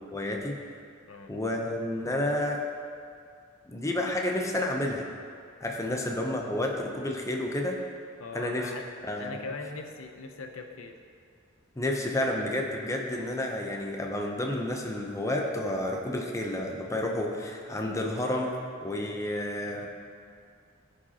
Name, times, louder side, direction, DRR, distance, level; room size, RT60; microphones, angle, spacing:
voice 1, 0.1-0.6 1.3-2.6 3.7-5.1 5.6-7.8 8.3-8.7 9.0-9.4 11.8-18.5 18.8-19.9, left 1 dB, 15° left, 1 dB, 0.7 m, -30 dB
voice 2, 8.2-8.9 9.2-11.0, left 3 dB, 85° left, 5 dB, 0.7 m, -40 dB
15.0 x 5.0 x 2.9 m, 2.3 s
head